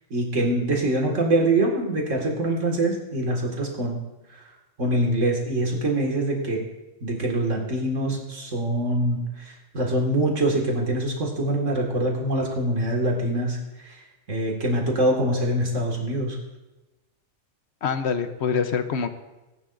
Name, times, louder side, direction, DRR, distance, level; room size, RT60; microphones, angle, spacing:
voice 1, 0.1-4.0 4.3-4.4 4.8-6.6 7.0-13.6 13.8-14.0 14.3-16.4, right 1 dB, 80° right, 0 dB, 2.4 m, -24 dB
voice 2, 17.8-19.1, left 6 dB, 65° left, 8 dB, 1.1 m, -25 dB
19.5 x 11.0 x 2.6 m, 1.1 s
omnidirectional pair, 1.3 m